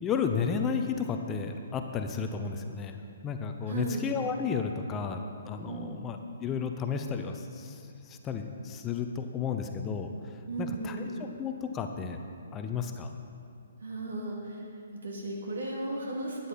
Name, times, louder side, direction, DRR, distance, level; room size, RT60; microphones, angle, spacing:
voice 1, 0.0-3.0 3.2-10.1 10.6-11.1 11.4-12.2 12.5-13.2, left 6 dB, 20° left, 5 dB, 0.7 m, -33 dB
voice 2, 3.6-4.0 5.6-6.0 10.5-11.1 13.8-14.6 15.0-16.5, right 2 dB, 70° right, -2 dB, 2.5 m, -35 dB
12.5 x 9.5 x 4.2 m, 2.5 s
figure-of-eight pair, 130°, 0 cm